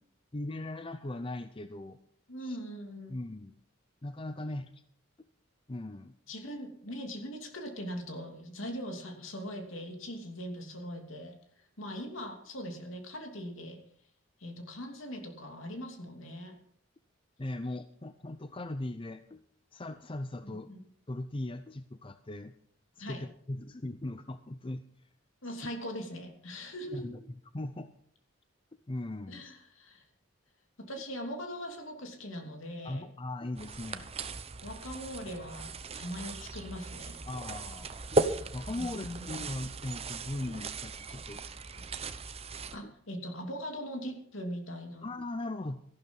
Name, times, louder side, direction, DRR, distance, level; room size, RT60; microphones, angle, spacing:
voice 1, 0.3-2.0 2.4-2.6 3.1-3.5 4.0-4.7 5.2-5.3 5.7-6.1 17.4-19.4 19.7-20.7 21.1-22.5 23.0-24.9 25.6-25.7 26.9-27.2 27.5-27.9 28.9-29.5 32.8-34.1 37.3-38.2 38.5-41.4 42.8-42.9 45.0-45.8, left 1 dB, 25° left, 10 dB, 0.6 m, -39 dB
voice 2, 2.3-3.1 6.3-11.3 11.8-13.8 14.4-16.6 20.4-20.8 23.0-23.2 25.4-27.2 29.3-30.0 30.9-33.1 34.6-37.2 38.7-39.5 41.7-41.8 42.7-45.1, equal, 70° left, 4 dB, 2.8 m, -41 dB
walking through high grass long, 33.6-42.8, right 3 dB, 30° right, 0.8 m, -37 dB
14.0 x 12.0 x 5.4 m, 0.62 s
head